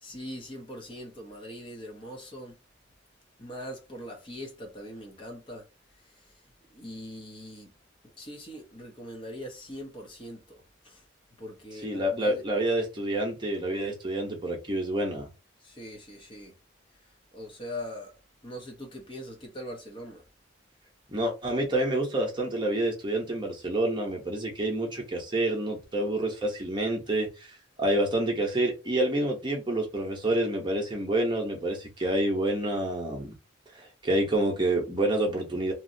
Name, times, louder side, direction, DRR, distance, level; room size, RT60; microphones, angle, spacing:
voice 1, 0.0-2.6 3.4-5.7 6.0-7.7 8.0-11.0 11.4-12.4 15.6-16.6 17.3-18.2 18.4-20.2, equal, 25° left, 0.7 m, -42 dB
voice 2, 11.8-15.3 21.1-33.4 34.0-35.7, right 1 dB, 25° right, 0.8 m, -28 dB
2.9 x 2.6 x 2.6 m
head